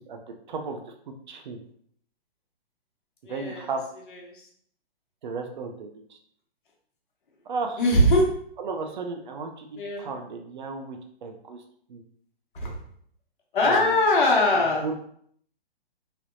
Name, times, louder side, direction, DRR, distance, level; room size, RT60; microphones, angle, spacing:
voice 1, 0.5-0.8 1.3-1.6 3.3-3.8 5.2-6.2 7.5-7.8 8.6-11.6 11.9-12.0 13.6-14.0 14.8-15.0, right 4 dB, 50° right, 5 dB, 0.5 m, -34 dB
voice 2, 3.3-3.6 7.8-8.2 9.8-10.1 12.6-12.7 13.5-14.8, left 1 dB, 55° left, -1 dB, 1.1 m, -21 dB
3.4 x 2.8 x 2.5 m, 0.64 s
hypercardioid pair, 155°, 31 cm